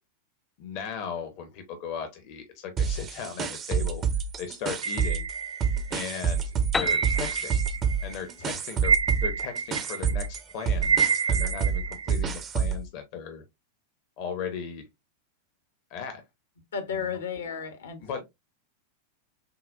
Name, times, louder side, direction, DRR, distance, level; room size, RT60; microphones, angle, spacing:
voice 1, 0.6-4.0 4.4-5.3 5.9-7.6 8.0-13.4 14.2-14.9 15.9-16.2 17.1-17.2 18.0-18.2, left 7 dB, 45° left, 0.9 m, -37 dB
sound 1, 2.8-5.3 5.6-12.9, right 6 dB, 30° right, 0.7 m, -28 dB
sound 2, 4.8-6.1 6.8-8.1 8.4-12.2, right 6 dB, 70° right, 0.5 m, -28 dB
Piano, 6.7-10.4, left 4 dB, 15° left, 0.4 m, -36 dB
voice 2, 16.7-18.2, left 6 dB, 65° left, 1.1 m, -34 dB
6.8 x 2.4 x 2.5 m
figure-of-eight pair, 90°, 0 cm